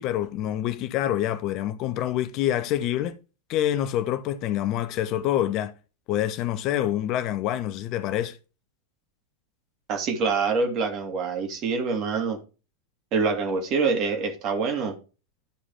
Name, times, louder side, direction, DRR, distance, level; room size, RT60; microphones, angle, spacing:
voice 1, 0.0-3.2 3.5-5.7 6.1-8.4, left 12 dB, 40° left, 0.7 m, -26 dB
voice 2, 9.9-12.4 13.1-15.0, right 4 dB, 35° right, 2.2 m, -25 dB
11.5 x 4.8 x 3.5 m
figure-of-eight pair, 90°, 0 cm